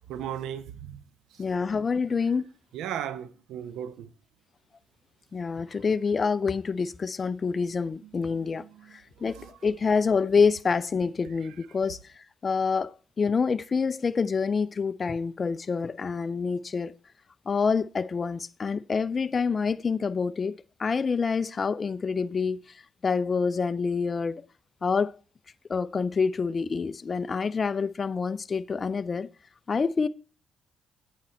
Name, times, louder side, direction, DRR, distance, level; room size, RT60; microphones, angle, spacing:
voice 1, 0.1-1.0 1.3-1.4 2.7-4.1 8.0-8.2 8.6-9.5 11.4-11.5, right 10 dB, 85° right, 0.8 m, -37 dB
voice 2, 1.4-2.4 5.3-8.6 9.2-12.0 12.4-12.9 13.2-16.9 17.5-20.5 20.8-22.6 23.0-24.4 24.8-25.1 25.7-29.3 29.7-30.1, left 5 dB, 35° left, 0.5 m, -27 dB
9.0 x 8.7 x 4.3 m
cardioid pair, 95°, 0 cm